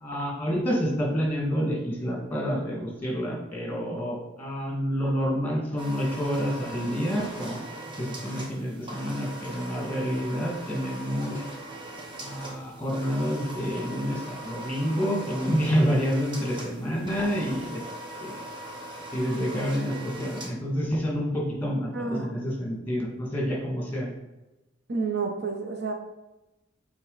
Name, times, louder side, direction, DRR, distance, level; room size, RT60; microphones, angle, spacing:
voice 1, 0.0-7.6 8.0-11.4 12.1-17.8 18.2-18.4 19.1-24.1, equal, 10° left, -2 dB, 1.9 m, -28 dB
sound 1, 5.8-20.5, right 1 dB, 25° right, 1.2 m, -40 dB
voice 2, 19.3-19.7 21.9-22.3 24.9-25.9, right 4 dB, 55° right, 4 dB, 0.7 m, -30 dB
8.3 x 4.4 x 4.0 m, 1.0 s
head